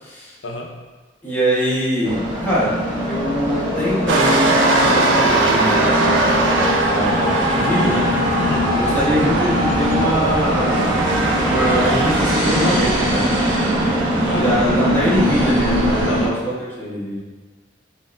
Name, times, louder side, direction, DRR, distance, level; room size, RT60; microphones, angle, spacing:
voice 1, 0.0-0.3 1.2-6.3 6.9-8.1 8.7-11.1 11.5-13.3 14.3-17.2, equal, 10° left, -9 dB, 1.1 m, -23 dB
sound 1, 2.0-16.3, equal, 25° right, 0.8 m, -21 dB
sound 2, 4.1-16.1, right 2 dB, 80° right, 0.5 m, -22 dB
voice 2, 8.4-8.7 14.2-14.7 16.1-16.4, left 1 dB, 85° left, 2 dB, 0.6 m, -28 dB
5.2 x 2.5 x 2.5 m, 1.3 s
head